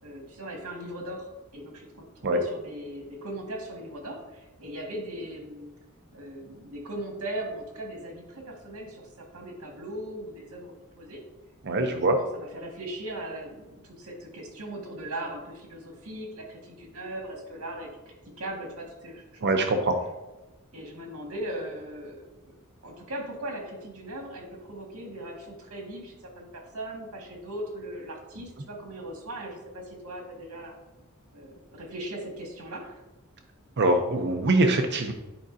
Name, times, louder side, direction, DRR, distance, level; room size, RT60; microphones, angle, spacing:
voice 1, 0.0-5.7 6.1-11.2 11.7-19.7 20.7-22.5 22.8-30.7 31.3-33.0, right 1 dB, 75° right, 1 dB, 1.8 m, -39 dB
voice 2, 11.7-12.2 19.4-19.9 33.8-35.1, right 2 dB, 50° right, 5 dB, 0.6 m, -23 dB
9.9 x 5.0 x 2.7 m, 1.1 s
head